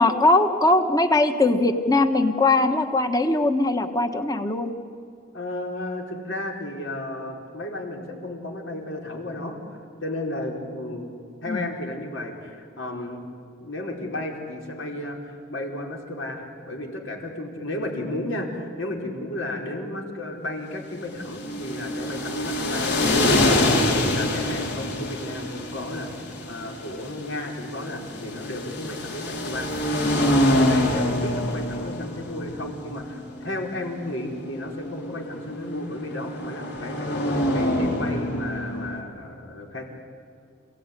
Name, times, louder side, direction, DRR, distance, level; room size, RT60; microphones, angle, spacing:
voice 1, 0.0-4.7 11.5-11.6, left 2 dB, 20° left, 7 dB, 1.4 m, -20 dB
voice 2, 5.3-9.6 10.0-11.1 11.4-13.2 13.6-29.7 30.2-39.8, left 1 dB, 75° left, 1 dB, 4.7 m, -33 dB
sound 1, 21.1-39.0, left 1 dB, 60° left, 3.3 m, -26 dB
28.5 x 17.5 x 9.9 m, 2.5 s
head